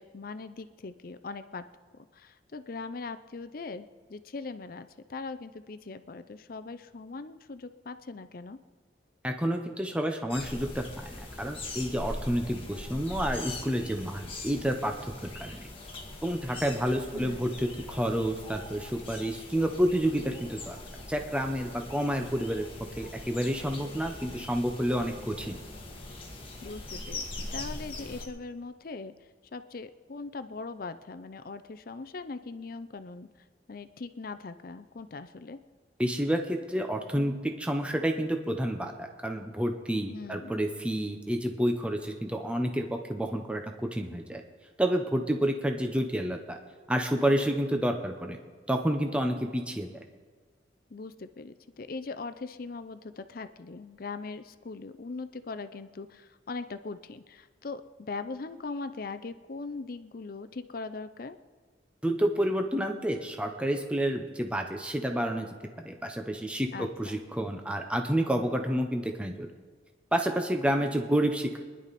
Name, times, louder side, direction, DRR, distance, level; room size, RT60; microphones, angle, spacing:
voice 1, 0.0-1.6 2.1-8.6 17.1-17.5 26.6-27.2 27.5-29.1 29.5-33.3 33.7-35.6 40.1-40.5 50.9-61.4 66.7-67.2, left 3 dB, 50° left, 11 dB, 0.5 m, -40 dB
voice 2, 9.2-15.7 16.2-20.8 21.1-22.7 23.0-25.6 36.0-44.4 44.8-46.6 46.9-48.4 48.7-49.9 62.0-65.5 65.8-69.5 70.1-71.6, equal, 5° right, 4 dB, 0.8 m, -29 dB
sound 1, 10.3-28.3, left 2 dB, 30° left, 1.8 m, -41 dB
23.0 x 11.0 x 4.2 m, 1.4 s
head